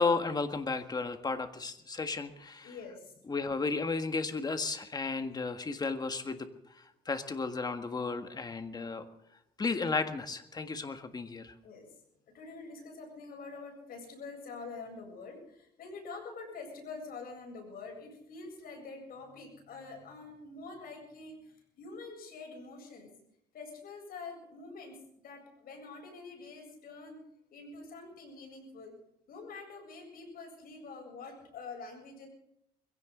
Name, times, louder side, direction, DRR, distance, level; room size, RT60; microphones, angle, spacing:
voice 1, 0.0-2.7 3.3-6.5 6.8-9.0 9.6-11.5, left 4 dB, 25° left, 8 dB, 1.7 m, -33 dB
voice 2, 2.6-3.1 11.6-11.9 12.3-23.1 23.5-25.0 25.2-27.2 27.5-28.9 29.3-32.3, left 4 dB, 60° left, 2 dB, 7.9 m, -46 dB
22.0 x 16.5 x 3.9 m, 0.80 s
cardioid pair, 110°, 17 cm